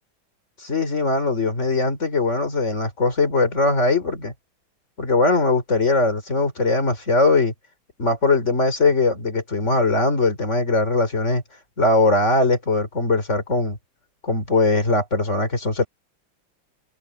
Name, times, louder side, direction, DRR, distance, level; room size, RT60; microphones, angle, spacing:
voice 1, 0.6-4.3 5.0-7.5 8.0-11.4 11.8-13.8 14.2-15.9, left 3 dB, 35° left, 3.6 m, -20 dB
omnidirectional pair, 2.3 m